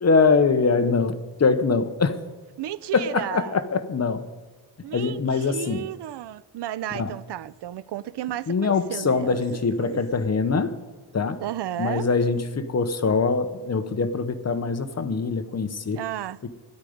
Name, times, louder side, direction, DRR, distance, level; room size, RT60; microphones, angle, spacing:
voice 1, 0.0-2.2 2.9-4.3 4.9-5.8 6.9-7.1 8.5-10.7 11.1-11.4 11.8-16.0, left 4 dB, 40° left, 0.9 m, -23 dB
voice 2, 2.6-3.6 4.8-10.0 11.4-12.1 15.9-16.4, right 12 dB, 85° right, 0.5 m, -33 dB
12.5 x 11.0 x 5.1 m
wide cardioid pair, 115°, 40 cm